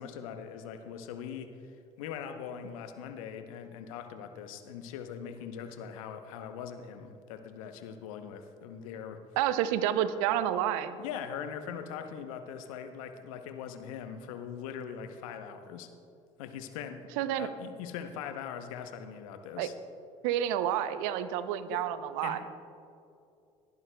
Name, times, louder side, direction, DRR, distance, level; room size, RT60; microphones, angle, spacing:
voice 1, 0.0-9.2 11.0-15.9 16.4-17.1 17.4-19.7 21.7-21.9 22.2-22.5, left 8 dB, 80° left, 8 dB, 0.8 m, -41 dB
voice 2, 9.4-11.0 17.2-17.5 19.6-19.7 20.2-22.4, right 11 dB, 75° right, 12 dB, 0.6 m, -29 dB
19.5 x 10.5 x 2.3 m, 2.6 s
hypercardioid pair, 60°, 17 cm